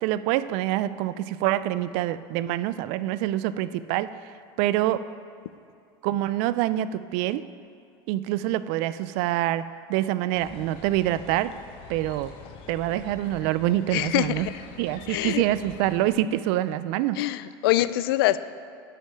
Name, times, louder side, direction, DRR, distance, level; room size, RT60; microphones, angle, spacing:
voice 1, 0.0-4.1 4.6-5.0 6.0-7.4 8.1-11.5 11.9-12.3 12.7-14.5 14.8-17.2, right 14 dB, 65° right, 14 dB, 0.4 m, -26 dB
sound 1, 10.3-16.1, left 6 dB, 50° left, 1.0 m, -45 dB
voice 2, 13.9-14.5 15.1-15.4 17.2-18.4, left 15 dB, 85° left, 15 dB, 0.4 m, -24 dB
6.6 x 6.4 x 7.3 m, 2.5 s
supercardioid pair, 125°, 12 cm